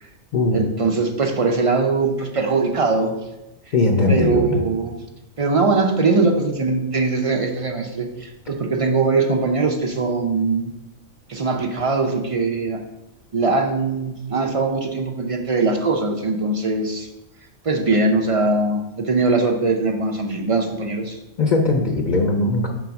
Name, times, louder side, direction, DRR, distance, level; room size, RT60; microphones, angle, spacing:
voice 1, 0.5-3.2 4.1-5.0 5.4-10.7 11.3-12.8 13.3-17.1 17.6-21.2, right 3 dB, 60° right, 2 dB, 0.3 m, -21 dB
voice 2, 3.7-4.6 21.4-22.7, left 2 dB, 45° left, 1 dB, 0.7 m, -19 dB
5.1 x 4.0 x 5.8 m, 0.97 s
omnidirectional pair, 1.4 m